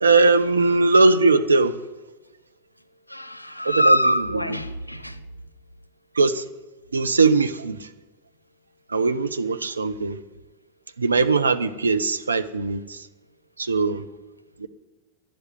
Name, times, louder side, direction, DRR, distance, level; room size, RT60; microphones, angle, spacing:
voice 1, 0.0-1.7 3.6-4.0 6.2-6.4 6.9-7.8 8.9-10.2 11.0-13.0 13.6-14.0 14.6-14.7, right 3 dB, 75° right, 9 dB, 0.8 m, -20 dB
voice 2, 3.1-5.2, equal, 90° left, 14 dB, 0.9 m, -23 dB
11.0 x 7.6 x 9.7 m, 1.1 s
figure-of-eight pair, 90°, 0 cm